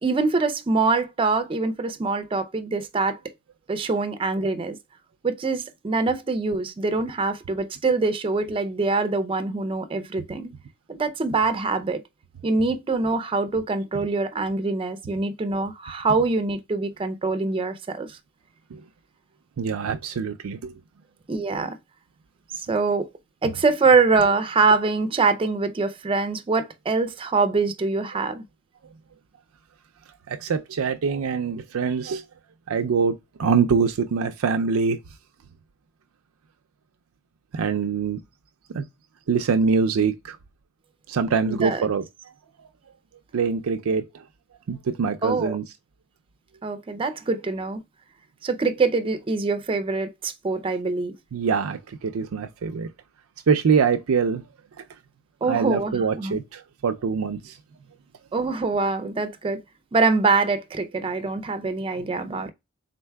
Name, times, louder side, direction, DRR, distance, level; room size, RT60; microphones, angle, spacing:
voice 1, 0.0-3.2 3.7-4.8 5.2-10.5 10.9-12.0 12.4-18.2 21.3-21.8 22.5-23.1 23.4-28.4 41.5-41.9 45.2-45.6 46.6-47.8 48.4-51.2 55.4-56.4 58.3-59.6 59.9-62.5, right 3 dB, 25° right, 0.4 m, -24 dB
voice 2, 19.6-20.7 30.3-32.2 32.7-35.0 37.5-38.2 38.7-38.8 39.3-40.4 41.1-42.0 43.3-44.0 44.7-45.6 51.3-52.9 53.5-54.4 55.5-57.6 62.3-62.4, right 5 dB, 90° right, 0.4 m, -24 dB
4.4 x 3.9 x 2.2 m
head